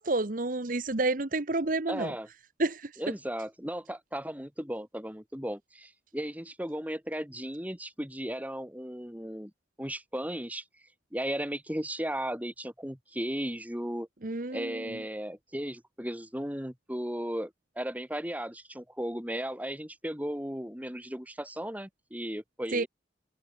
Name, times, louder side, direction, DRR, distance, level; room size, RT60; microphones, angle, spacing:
voice 1, 0.0-2.1 2.6-2.9 14.2-15.0 22.7-22.8, right 2 dB, 50° right, 1.2 m, -29 dB
voice 2, 1.9-2.3 3.0-9.5 9.8-10.6 11.1-14.1 14.5-22.9, equal, 10° right, 6.3 m, -36 dB
head